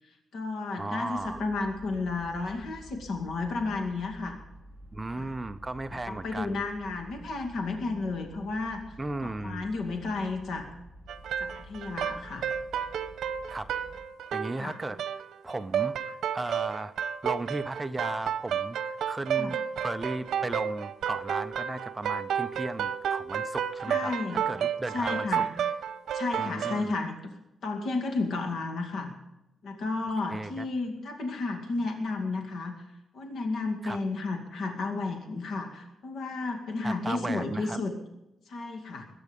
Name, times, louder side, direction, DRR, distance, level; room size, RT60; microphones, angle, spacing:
voice 1, 0.0-4.4 5.1-5.3 5.9-8.9 9.2-10.7 11.4-12.5 14.6-14.8 19.4-19.6 23.8-24.4 24.9-25.5 26.1-27.1 27.6-29.1 29.6-32.9 33.1-37.9 38.5-39.1, left 3 dB, 65° left, 4 dB, 2.2 m, -32 dB
voice 2, 0.8-1.4 4.9-6.6 9.0-9.7 13.5-13.7 14.3-15.0 15.4-16.9 17.2-24.1 24.5-25.3 26.4-26.9 30.3-30.7 33.8-34.0 36.8-37.8, right 2 dB, 15° right, 11 dB, 0.6 m, -35 dB
sound 1, 1.2-14.1, equal, 15° left, 1.7 m, -50 dB
sound 2, 11.1-26.8, right 8 dB, 75° right, 1.0 m, -31 dB
22.0 x 9.4 x 5.2 m, 0.94 s
wide cardioid pair, 160°, 0 cm